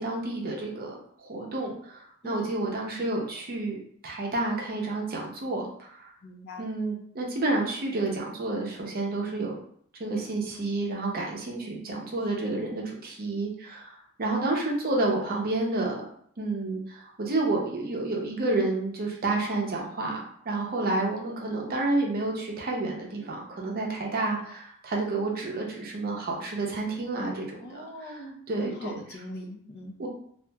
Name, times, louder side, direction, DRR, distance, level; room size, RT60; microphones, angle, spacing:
voice 1, 0.0-3.8 4.0-6.1 6.6-9.6 10.0-16.0 16.4-20.2 20.5-28.2 28.5-29.2 30.0-30.1, right 2 dB, 45° right, 0 dB, 0.6 m, -30 dB
voice 2, 6.2-6.6 27.6-29.9, left 1 dB, 50° left, 0 dB, 0.5 m, -41 dB
2.8 x 2.4 x 2.2 m, 0.64 s
head